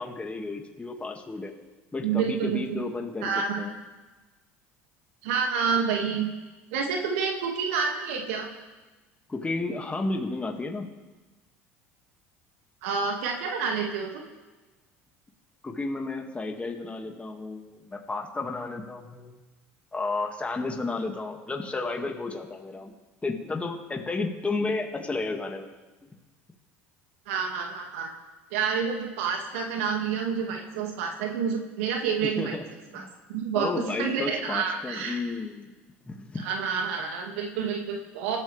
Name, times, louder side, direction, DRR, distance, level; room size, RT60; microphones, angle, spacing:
voice 1, 0.0-1.5 1.9-3.3 3.6-3.8 9.3-10.9 15.6-19.4 19.9-22.9 23.2-25.7 32.2-32.6 33.0-33.1 33.5-35.7 36.1-36.5, left 3 dB, 15° left, 2 dB, 2.2 m, -32 dB
voice 2, 2.0-2.8 3.2-3.6 5.2-6.3 6.7-8.5 12.8-14.2 27.3-28.1 28.5-32.6 32.9-33.0 33.3-33.7 34.0-35.2 36.4-38.4, right 6 dB, 75° right, 2 dB, 2.2 m, -28 dB
28.0 x 13.0 x 3.5 m, 1.2 s
hypercardioid pair, 70°, 7 cm